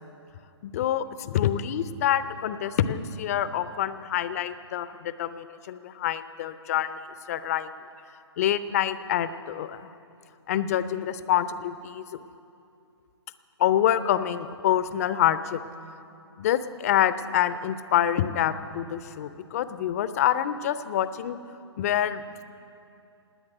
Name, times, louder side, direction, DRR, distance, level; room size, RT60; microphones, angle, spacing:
voice 1, 0.6-7.7 8.4-9.9 10.5-12.2 13.6-15.6 16.4-21.4 21.8-22.4, left 11 dB, 35° left, 14 dB, 0.6 m, -26 dB
18.0 x 9.8 x 7.8 m, 2.6 s
figure-of-eight pair, 130°, 15 cm